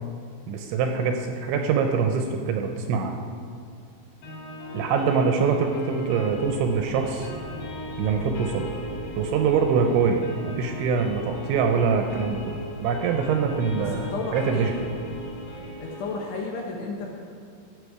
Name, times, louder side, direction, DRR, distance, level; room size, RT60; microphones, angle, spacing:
voice 1, 0.5-3.2 4.7-7.3 8.0-8.7 9.2-14.7, right 5 dB, 80° right, 4 dB, 2.8 m, -24 dB
sound 1, 4.2-16.2, equal, 55° left, 4.8 m, -38 dB
sound 2, 6.2-15.7, right 1 dB, 25° left, 2.6 m, -44 dB
voice 2, 13.7-14.8 15.8-17.1, left 3 dB, 70° left, -1 dB, 2.7 m, -33 dB
15.0 x 8.5 x 4.8 m, 2.3 s
omnidirectional pair, 5.8 m